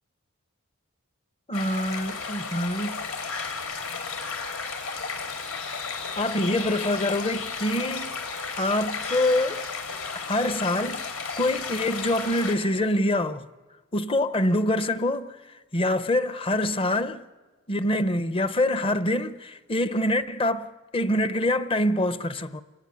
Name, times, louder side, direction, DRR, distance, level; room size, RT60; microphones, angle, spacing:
sound 1, 1.5-12.5, left 5 dB, 80° left, 3.6 m, -33 dB
voice 1, 1.5-3.0 6.2-8.1 8.6-9.6 10.3-11.1 11.4-13.5 13.9-15.4 15.7-17.2 17.7-22.6, left 1 dB, 25° left, 0.7 m, -25 dB
29.0 x 16.0 x 9.6 m
head